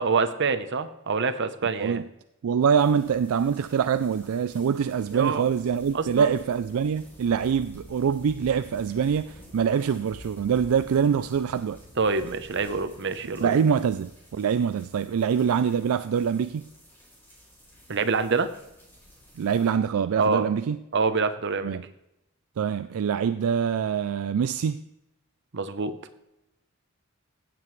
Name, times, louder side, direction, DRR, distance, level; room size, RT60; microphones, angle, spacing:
voice 1, 0.0-2.0 5.1-5.4 5.9-6.3 12.0-13.6 17.9-18.5 20.2-20.4 20.9-21.8 25.5-26.0, right 4 dB, 55° right, 0.8 m, -26 dB
voice 2, 2.4-11.8 13.4-16.7 19.4-20.8 21.6-21.9 22.6-24.8, right 7 dB, 75° right, 0.4 m, -24 dB
sound 1, 2.7-19.7, left 1 dB, 10° left, 4.5 m, -51 dB
16.0 x 7.7 x 3.2 m
head